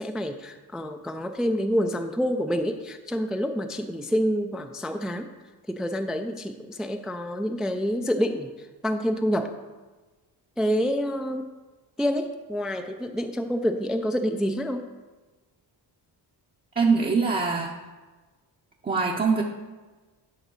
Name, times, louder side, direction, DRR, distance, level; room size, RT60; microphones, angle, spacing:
voice 1, 0.0-5.3 5.7-9.6 10.6-11.5 12.0-14.9, equal, ahead, 6 dB, 0.3 m, -27 dB
voice 2, 16.8-17.7 18.8-19.4, right 4 dB, 20° right, -1 dB, 0.7 m, -23 dB
11.0 x 3.9 x 6.2 m, 1.3 s
cardioid pair, 120°, 43 cm